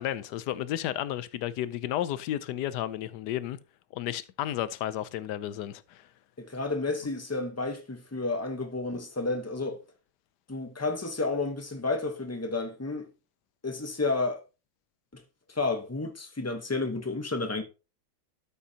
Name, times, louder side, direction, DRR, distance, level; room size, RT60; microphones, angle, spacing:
voice 1, 0.0-3.6 3.9-6.1, left 12 dB, 80° left, 1.2 m, -32 dB
voice 2, 6.4-9.8 10.5-13.1 13.6-14.4 15.1-15.2 15.5-17.6, left 3 dB, 15° left, 0.7 m, -31 dB
13.0 x 5.5 x 2.8 m
omnidirectional pair, 1.8 m